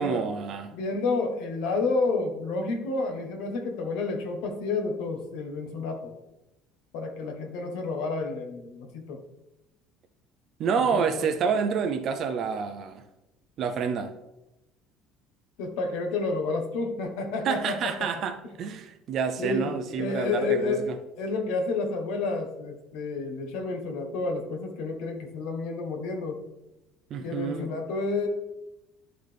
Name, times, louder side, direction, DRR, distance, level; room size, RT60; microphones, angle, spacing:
voice 1, 0.0-0.7 10.6-13.0 13.6-14.1 17.4-21.0 27.1-27.7, right 6 dB, 35° right, 8 dB, 0.5 m, -28 dB
voice 2, 0.7-6.1 6.9-9.2 10.9-11.3 15.6-18.1 19.4-19.7 20.0-20.9 21.2-26.4 27.2-28.3, left 3 dB, 70° left, 4 dB, 1.2 m, -30 dB
11.5 x 3.9 x 3.4 m, 0.94 s
cardioid pair, 180°, 0 cm